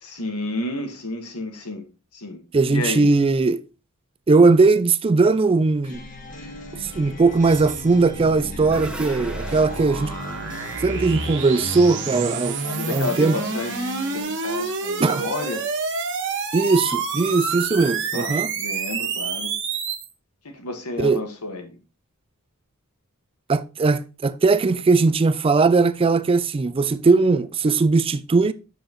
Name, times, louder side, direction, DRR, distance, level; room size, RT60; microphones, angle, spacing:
voice 1, 0.0-1.9 2.1-2.4 2.7-3.1 12.6-15.6 18.1-19.5 20.4-21.8, left 2 dB, 85° left, 1.6 m, -31 dB
voice 2, 2.5-3.6 4.3-6.0 6.8-10.1 10.8-12.6 12.9-13.3 15.0-15.2 16.5-18.5 21.0-21.2 23.5-28.5, right 3 dB, 25° right, 0.4 m, -19 dB
sound 1, 5.8-14.2, left 1 dB, 35° left, 1.7 m, -39 dB
sound 2, 5.9-20.1, right 4 dB, 55° right, 1.5 m, -29 dB
sound 3, 8.5-12.5, right 2 dB, 5° right, 0.7 m, -41 dB
7.7 x 6.7 x 3.0 m
head